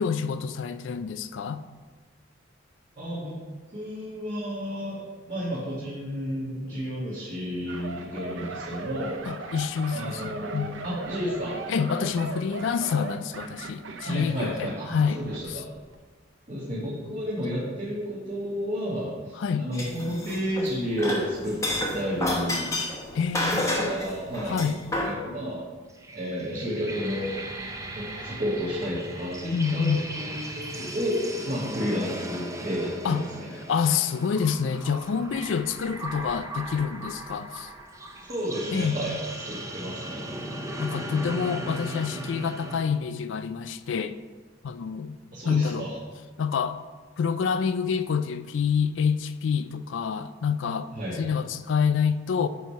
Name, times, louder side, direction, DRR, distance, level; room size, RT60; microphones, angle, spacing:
voice 1, 0.0-1.6 9.3-10.8 11.7-15.2 15.5-15.6 19.4-19.7 23.1-23.9 24.5-24.8 29.5-30.0 33.0-33.2 33.7-37.7 38.7-39.0 40.8-44.2 44.6-45.2 45.4-45.8 46.4-46.8 47.2-50.9 51.2-52.5, left 6 dB, 70° left, 12 dB, 0.4 m, -27 dB
voice 2, 3.0-3.4 3.7-9.1 9.4-9.6 9.9-11.6 14.1-15.7 16.5-21.6 21.9-22.7 23.5-24.6 25.0-25.6 26.1-27.4 27.9-31.2 31.5-33.5 38.3-39.2 39.5-40.2 45.3-46.0 50.9-51.2, equal, 40° right, -8 dB, 1.6 m, -31 dB
sound 1, 7.7-15.5 15.8-16.0, right 3 dB, 75° right, 0.6 m, -38 dB
sound 2, 19.7-20.7 21.0-25.1, left 1 dB, 15° left, 0.9 m, -29 dB
sound 3, 25.9-42.8, right 1 dB, 15° right, 0.6 m, -38 dB
9.1 x 3.2 x 5.5 m, 1.4 s
head